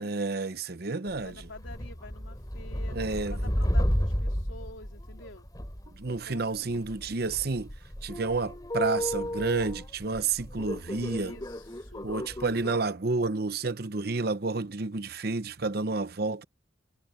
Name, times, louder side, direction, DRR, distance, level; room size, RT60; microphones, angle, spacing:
voice 1, 0.0-1.5 2.9-3.4 6.0-7.7 8.0-11.3 12.0-16.4, right 3 dB, 50° right, 0.8 m, -30 dB
sound 1, 1.1-12.8, equal, 20° left, 3.2 m, -33 dB
voice 2, 1.2-5.5 6.1-6.9 10.8-12.2, left 2 dB, 85° left, 3.8 m, -48 dB
head